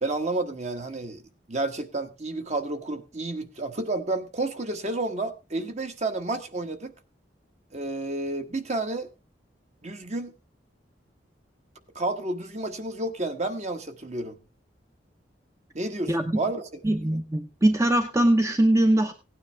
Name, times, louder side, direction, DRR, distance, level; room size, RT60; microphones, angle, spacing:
voice 1, 0.0-1.2 1.5-6.9 7.7-9.1 9.8-10.3 11.9-14.4 15.7-16.7, right 2 dB, 40° right, 1.3 m, -30 dB
voice 2, 16.8-19.1, right 1 dB, 15° right, 0.7 m, -21 dB
17.0 x 9.4 x 3.3 m
head